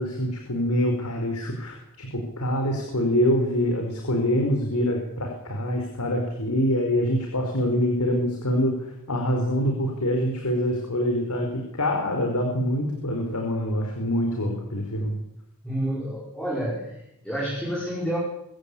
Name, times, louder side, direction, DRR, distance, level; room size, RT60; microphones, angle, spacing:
voice 1, 0.0-15.2, equal, 90° left, 2 dB, 4.9 m, -25 dB
voice 2, 15.6-18.2, equal, 5° left, -4 dB, 5.5 m, -29 dB
24.5 x 16.0 x 8.7 m, 0.80 s
head